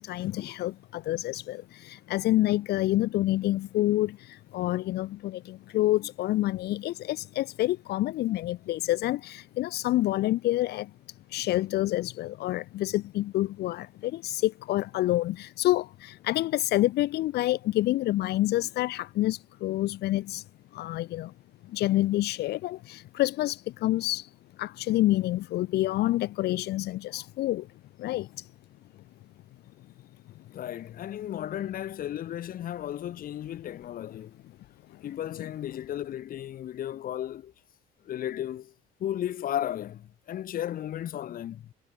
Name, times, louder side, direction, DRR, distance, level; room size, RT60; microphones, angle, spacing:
voice 1, 0.0-10.9 11.3-20.4 20.7-21.3 21.6-24.3 24.6-27.7 28.0-28.5 34.9-35.0, left 16 dB, 75° left, 1.7 m, -28 dB
voice 2, 30.5-34.4 35.0-37.5 38.0-38.7 39.0-41.7, left 11 dB, 60° left, 2.2 m, -34 dB
cardioid pair, 110°, 17 cm